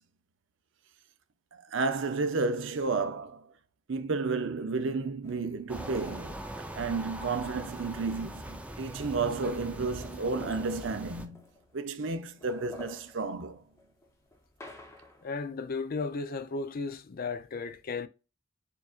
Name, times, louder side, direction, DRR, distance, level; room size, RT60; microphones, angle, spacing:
voice 1, 1.5-3.5 3.9-11.4 11.7-13.7, right 4 dB, 70° right, 0.6 m, -32 dB
sound 1, 5.2-7.4 8.4-8.5 8.8-11.9 12.2-15.4, left 2 dB, 15° left, 0.9 m, -51 dB
sound 2, 5.7-11.3, right 1 dB, 5° right, 0.5 m, -41 dB
voice 2, 15.2-18.1, left 4 dB, 50° left, 0.4 m, -35 dB
6.9 x 2.5 x 2.4 m
head